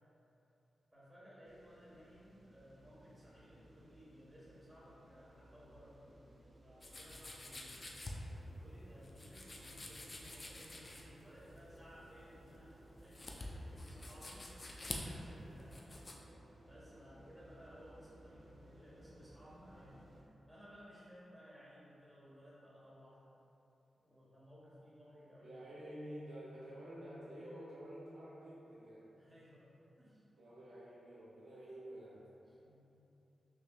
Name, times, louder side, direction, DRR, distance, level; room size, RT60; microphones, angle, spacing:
voice 1, 0.9-6.0 6.6-7.8 8.4-15.8 16.6-23.2 24.0-25.6 29.1-29.7 30.0-30.2 32.5-32.9, equal, 10° right, -9 dB, 1.4 m, -59 dB
sound 1, 1.4-20.2, right 1 dB, 50° right, 0.6 m, -61 dB
sound 2, 6.8-16.1, left 2 dB, 40° left, 0.4 m, -48 dB
voice 2, 25.4-29.1 30.4-32.3, equal, 85° right, -8 dB, 0.9 m, -50 dB
5.8 x 2.6 x 2.3 m, 2.9 s
cardioid pair, 80°, 0 cm